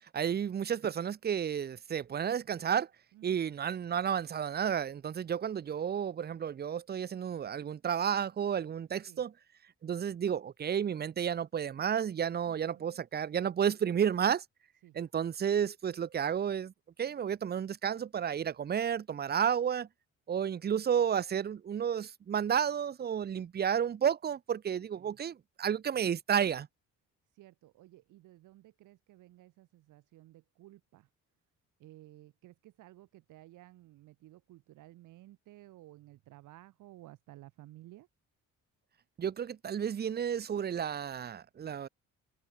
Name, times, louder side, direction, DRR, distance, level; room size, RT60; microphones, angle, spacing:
voice 1, 0.1-2.9 3.2-9.3 9.8-14.4 14.9-16.7 17.0-19.9 20.3-26.7 39.2-41.9, right 8 dB, 35° right, 0.6 m, -31 dB
voice 2, 3.1-3.5 9.1-9.2 12.4-13.0 14.8-15.0 24.7-25.2 27.3-31.1 31.8-38.1, right 16 dB, 90° right, 3.9 m, -55 dB
cardioid pair, 90°, 30 cm